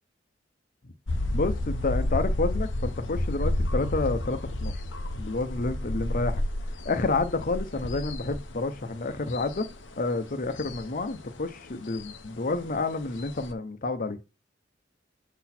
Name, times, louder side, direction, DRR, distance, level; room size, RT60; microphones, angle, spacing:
sound 1, 1.1-13.5, left 1 dB, 85° left, 0.8 m, -31 dB
voice 1, 1.3-4.7 5.1-6.4 6.8-9.7 10.0-14.2, left 3 dB, 50° left, 0.8 m, -29 dB
7.1 x 4.1 x 4.3 m
head